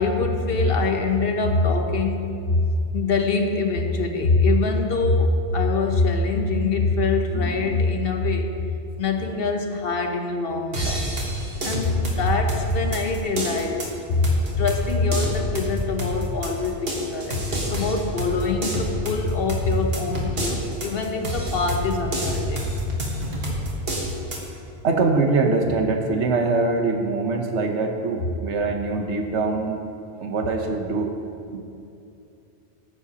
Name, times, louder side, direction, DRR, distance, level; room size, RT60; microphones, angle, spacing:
voice 1, 0.0-2.6 2.9-8.7 9.0-11.1 11.6-22.6, left 3 dB, 55° left, 4 dB, 0.9 m, -24 dB
voice 2, 7.3-7.8 24.8-29.8 30.2-31.1 31.5-31.6, right 3 dB, 70° right, 4 dB, 1.2 m, -23 dB
sound 1, 10.7-24.5, equal, 55° right, 1.7 m, -28 dB
13.5 x 9.8 x 2.8 m, 2.6 s
omnidirectional pair, 1.2 m